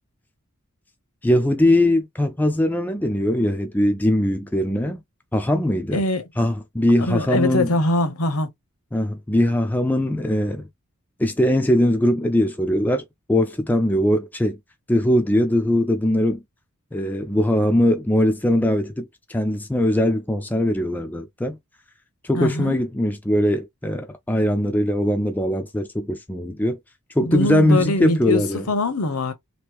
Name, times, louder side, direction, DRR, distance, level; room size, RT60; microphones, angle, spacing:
voice 1, 1.2-5.0 5.3-6.0 6.4-7.7 8.9-10.7 11.2-14.6 14.9-16.4 16.9-21.6 22.2-26.8 27.2-28.7, left 1 dB, 10° left, 0.4 m, -21 dB
voice 2, 5.9-6.3 7.1-8.5 22.3-22.8 27.2-29.3, left 2 dB, 75° left, 0.9 m, -22 dB
3.1 x 2.6 x 3.0 m
head